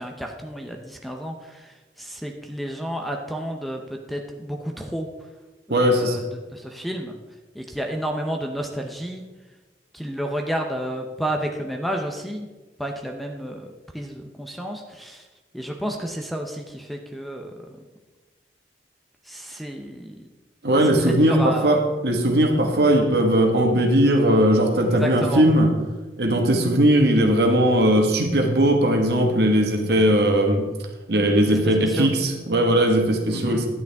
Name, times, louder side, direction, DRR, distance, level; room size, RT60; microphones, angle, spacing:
voice 1, 0.0-5.1 5.7-6.2 6.5-7.1 7.5-9.2 9.9-12.5 12.8-13.7 13.9-15.3 15.5-17.5 19.2-20.3 21.0-21.7 24.9-25.4 31.4-32.1 33.3-33.6, equal, ahead, 3 dB, 0.7 m, -31 dB
voice 2, 5.7-6.2 20.6-25.7 26.2-30.7 31.1-33.7, right 1 dB, 65° right, 3 dB, 1.5 m, -19 dB
10.5 x 9.1 x 3.5 m, 1.2 s
head